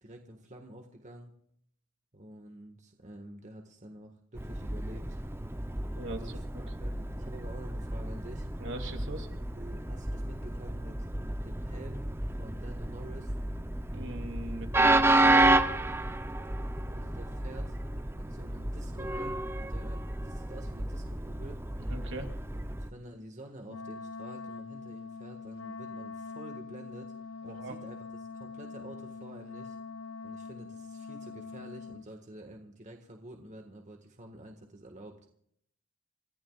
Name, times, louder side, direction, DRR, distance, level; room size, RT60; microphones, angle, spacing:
voice 1, 0.0-1.3 2.1-5.2 6.1-8.5 9.5-11.1 11.4-12.1 12.4-13.3 16.9-17.8 18.1-21.6 22.5-27.1 27.4-29.8 30.2-35.2, right 1 dB, 35° right, 3 dB, 1.7 m, -48 dB
Train, 4.3-22.9, right 2 dB, 10° right, 0.7 m, -31 dB
voice 2, 5.9-6.6 8.6-9.3 13.9-15.6 21.9-22.3 27.4-27.8, right 2 dB, 65° right, 3 dB, 2.8 m, -40 dB
Wind instrument woodwind instrument, 23.6-32.1, left 5 dB, 75° left, 0.6 m, -43 dB
28.5 x 14.0 x 2.4 m, 0.67 s
head